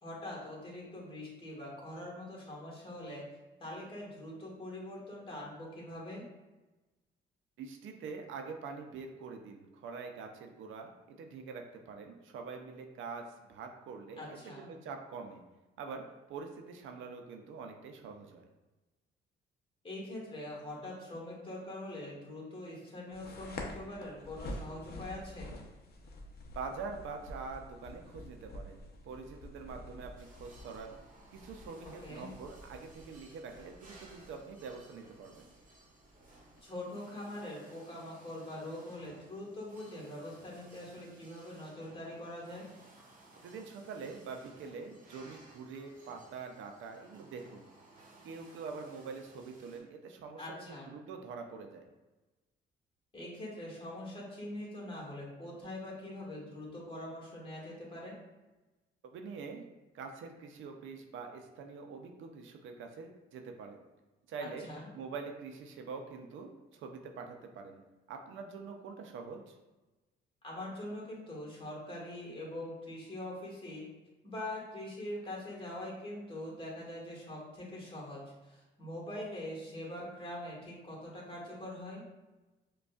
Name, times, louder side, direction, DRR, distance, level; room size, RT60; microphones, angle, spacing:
voice 1, 0.0-3.2 3.6-6.3 14.2-14.7 19.8-25.5 31.8-32.3 36.6-42.7 50.4-50.9 53.1-58.1 64.4-64.9 70.4-73.9 74.2-82.0, left 1 dB, 25° left, -3 dB, 1.4 m, -43 dB
voice 2, 7.6-15.4 15.8-18.5 26.6-31.0 31.3-35.4 43.4-47.7 48.2-51.9 59.1-59.6 59.9-63.8 64.3-64.7 64.9-67.8 68.1-69.5, right 5 dB, 75° right, 4 dB, 0.5 m, -45 dB
sound 1, 23.1-36.6, left 1 dB, 55° left, 0.6 m, -48 dB
sound 2, 30.2-49.8, right 2 dB, 45° right, 0.9 m, -59 dB
5.0 x 2.3 x 2.3 m, 1.1 s
cardioid pair, 90°, 20 cm